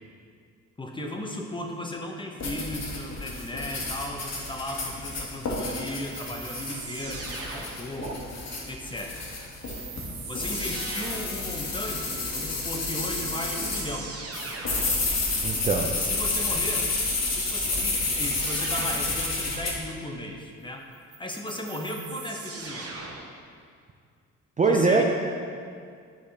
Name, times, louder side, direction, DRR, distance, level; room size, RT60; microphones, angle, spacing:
voice 1, 0.8-8.2 8.7-9.2 10.3-14.1 16.0-16.9 17.4-20.9 21.2-22.9 24.7-25.0, left 1 dB, 15° left, 2 dB, 0.8 m, -36 dB
sound 1, 2.4-13.9 14.3-19.7, left 3 dB, 60° left, 1.3 m, -30 dB
sound 2, 6.1-8.1 9.6-11.4 12.7-12.8 13.2-15.0 17.4-19.2 20.9-23.4, right 4 dB, 50° right, 1.0 m, -40 dB
voice 2, 15.4-15.9 24.6-25.0, right 4 dB, 25° right, 1 dB, 0.5 m, -22 dB
9.0 x 4.8 x 2.8 m, 2.2 s
cardioid pair, 90°, 30 cm